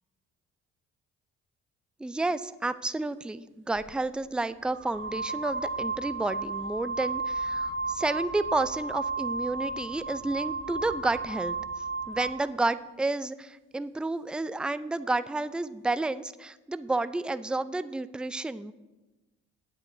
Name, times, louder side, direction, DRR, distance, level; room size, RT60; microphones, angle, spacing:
voice 1, 2.0-11.6 12.1-18.7, right 2 dB, 5° right, 14 dB, 0.4 m, -31 dB
sound 1, 3.8-3.9 4.7-12.4, right 3 dB, 30° right, 1.1 m, -33 dB
18.0 x 9.1 x 2.7 m, 1.1 s
hypercardioid pair, 45°, 37 cm